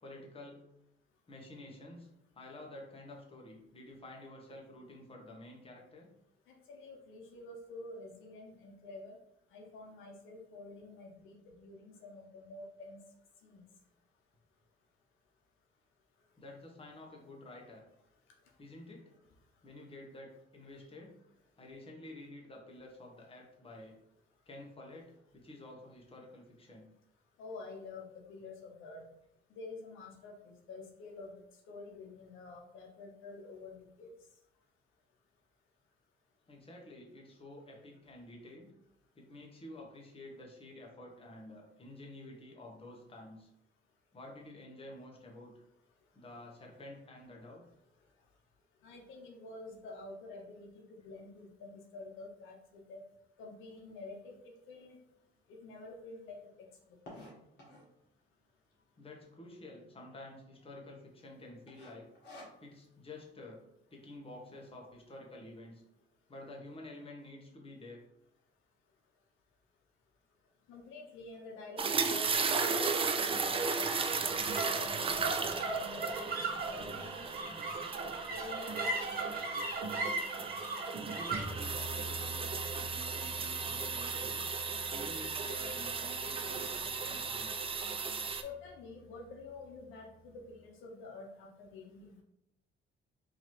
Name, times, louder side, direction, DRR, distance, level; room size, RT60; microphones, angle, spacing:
voice 1, 0.0-0.6 1.3-2.1 2.3-6.1 16.4-17.8 18.6-19.0 19.6-21.1 21.6-24.0 24.5-26.9 36.5-38.7 39.1-43.5 44.1-45.6 46.1-47.6 59.0-62.1 62.6-63.6 63.9-65.8 66.3-68.0 81.0-82.5 82.7-84.4 84.9-87.5, left 1 dB, 30° left, -1 dB, 1.1 m, -50 dB
voice 2, 6.7-9.2 9.5-13.0 13.4-13.7 27.4-29.0 29.5-31.3 31.7-34.1 48.8-53.0 53.4-54.3 54.7-55.0 55.5-56.4 70.7-72.3 72.8-76.2 76.7-77.3 78.2-79.2 88.4-92.1, left 2 dB, 85° left, 1 dB, 0.7 m, -48 dB
sound 1, 54.6-54.7 55.2-55.3 55.5-55.6 55.9-58.0 58.6-59.1 59.4-59.5 59.7-59.8 60.4-60.7 61.0-61.3 61.7-62.9, left 1 dB, 55° left, 1.5 m, -52 dB
sound 2, 71.8-88.4, right 5 dB, 30° right, 0.4 m, -36 dB
sound 3, 72.3-88.9, right 2 dB, 50° right, 1.0 m, -40 dB
3.9 x 2.9 x 3.1 m, 0.82 s
cardioid pair, 90°, 20 cm